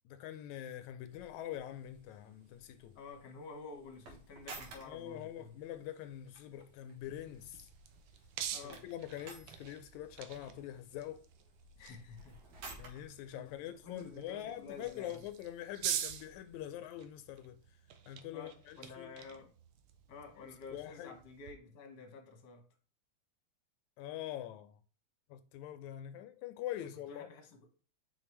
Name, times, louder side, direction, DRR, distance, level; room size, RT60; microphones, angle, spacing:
voice 1, 0.1-3.0 4.9-7.7 8.8-11.3 12.8-17.6 18.1-19.1 20.7-21.1 24.0-24.8 25.3-27.3, left 12 dB, 85° left, 1.9 m, -44 dB
sound 1, 1.1-16.6, right 2 dB, 65° right, 2.7 m, -56 dB
voice 2, 2.9-5.6 8.5-8.8 11.7-12.4 12.7-12.8 13.3-15.2 18.3-19.5 20.1-22.6 27.1-27.7, left 4 dB, 45° left, 1.6 m, -50 dB
sound 2, 7.1-21.5, right 9 dB, 85° right, 1.2 m, -46 dB
5.9 x 5.3 x 3.2 m
omnidirectional pair, 3.3 m